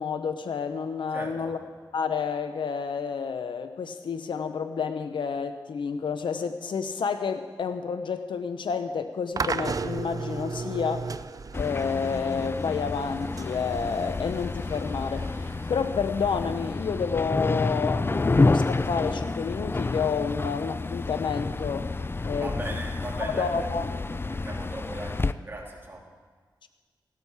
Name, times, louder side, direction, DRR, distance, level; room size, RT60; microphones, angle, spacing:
voice 1, 0.0-1.6 1.9-11.1 11.5-21.9 22.2-22.5 23.2-23.9, left 6 dB, 85° left, 9 dB, 0.7 m, -30 dB
voice 2, 1.1-1.6 22.4-23.7 24.3-26.0, right 1 dB, 30° right, -2 dB, 3.4 m, -38 dB
sound 1, 9.4-16.4, right 4 dB, 45° right, 0.5 m, -35 dB
sound 2, 11.5-25.3, left 3 dB, 30° left, 0.5 m, -29 dB
16.0 x 13.0 x 4.7 m, 1.5 s
cardioid pair, 70°, 8 cm